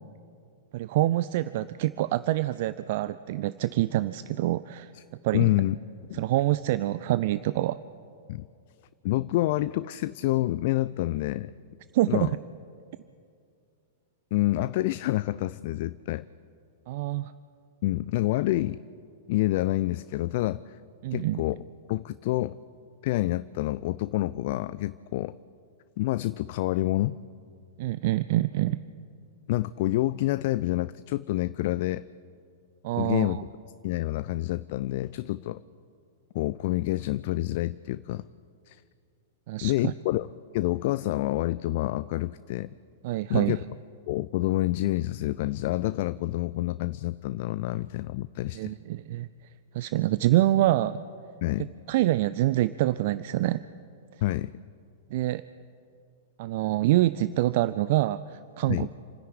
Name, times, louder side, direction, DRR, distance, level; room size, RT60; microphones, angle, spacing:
voice 1, 0.7-4.9 5.2-5.5 6.1-7.8 11.9-12.3 16.9-17.3 21.0-21.4 27.8-28.8 32.8-33.4 39.5-39.9 43.0-43.6 48.5-49.3 49.7-51.0 51.9-53.6 54.1-54.2 55.1-55.4 56.4-58.9, right 15 dB, 50° right, 15 dB, 0.5 m, -26 dB
voice 2, 5.3-5.8 6.1-6.2 8.3-8.5 9.0-11.5 12.1-12.3 14.3-16.3 17.8-18.8 19.3-20.8 21.1-21.6 21.9-22.6 23.0-25.4 26.0-27.2 29.5-32.0 32.9-33.4 33.8-35.6 36.3-38.3 38.7-38.8 39.6-40.3 40.5-42.7 43.3-43.6 44.1-48.7 49.8-49.9 51.4-51.7 54.2-54.5 58.7-58.9, left 17 dB, 50° left, 16 dB, 0.4 m, -28 dB
28.5 x 10.5 x 9.7 m, 2.4 s
figure-of-eight pair, 100°, 0 cm